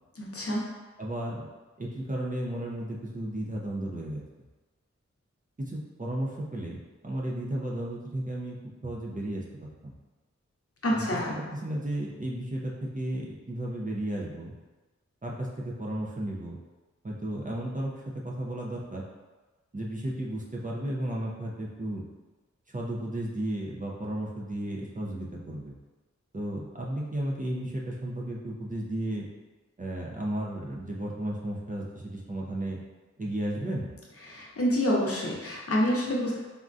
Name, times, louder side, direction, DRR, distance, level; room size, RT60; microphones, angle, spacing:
voice 1, 0.2-0.7 10.8-11.4 34.3-36.4, equal, 50° left, -4 dB, 0.7 m, -27 dB
voice 2, 1.0-1.5 1.8-4.2 5.6-8.6 8.8-9.9 10.9-14.5 15.2-16.6 17.0-17.9 18.2-19.0 19.7-22.0 22.7-25.7 26.3-29.3 29.8-32.8 33.2-33.9, right 1 dB, 30° right, -3 dB, 0.5 m, -34 dB
3.5 x 2.2 x 2.5 m, 1.2 s
wide cardioid pair, 50°, 29 cm